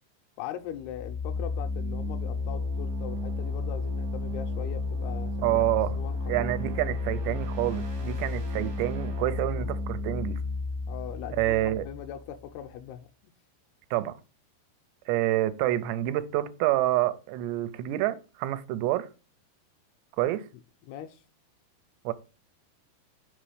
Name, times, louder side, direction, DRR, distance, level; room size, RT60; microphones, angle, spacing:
voice 1, 0.4-5.3 5.6-5.7 6.0-6.5 10.9-13.1 20.9-21.2, left 10 dB, 85° left, 2.3 m, -40 dB
sound 1, 0.7-12.5, left 3 dB, 55° right, 1.0 m, -32 dB
voice 2, 5.4-6.0 6.3-10.4 11.4-11.8 13.9-14.1 15.1-19.1 20.2-20.5 22.1-22.2, right 14 dB, 90° right, 2.9 m, -27 dB
6.1 x 5.2 x 4.8 m
omnidirectional pair, 4.8 m